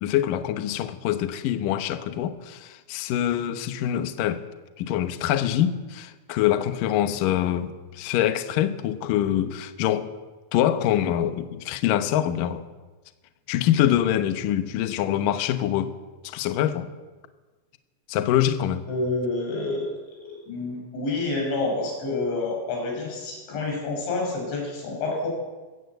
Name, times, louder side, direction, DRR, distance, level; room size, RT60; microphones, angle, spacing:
voice 1, 0.0-4.4 4.8-10.1 10.5-12.7 13.5-15.9 16.2-16.9 18.1-18.8, left 11 dB, 85° left, 1.9 m, -24 dB
voice 2, 18.9-25.3, left 3 dB, 70° left, 7.8 m, -28 dB
21.0 x 16.5 x 8.1 m
omnidirectional pair, 5.5 m